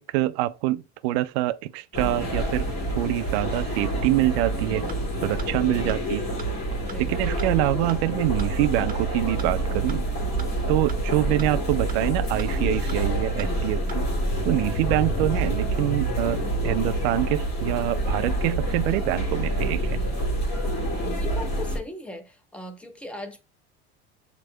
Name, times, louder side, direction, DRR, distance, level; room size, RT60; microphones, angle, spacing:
voice 1, 0.0-2.7 3.0-4.8 5.2-6.2 7.0-10.1 10.7-14.1 14.4-20.0, right 16 dB, 65° right, 0.5 m, -25 dB
sound 1, 1.9-21.8, right 1 dB, 30° left, 2.4 m, -27 dB
sound 2, 4.9-5.0 5.4-5.5 5.9-6.0 6.4-6.5 6.9-7.0 7.4-7.5 7.9-8.0 8.4-8.5 8.9-9.0 9.4-9.5 9.9-10.0 10.4-10.5 10.9-11.0 11.4-11.5 11.9-12.0 12.4-12.5 12.9-13.0 13.4-13.5 13.9-14.0, right 7 dB, 25° right, 1.1 m, -40 dB
voice 2, 5.7-6.4 6.8-7.9 11.3-11.4 15.0-15.3 21.0-23.4, left 1 dB, 5° left, 1.1 m, -40 dB
7.5 x 3.0 x 2.2 m
hypercardioid pair, 85°, 33 cm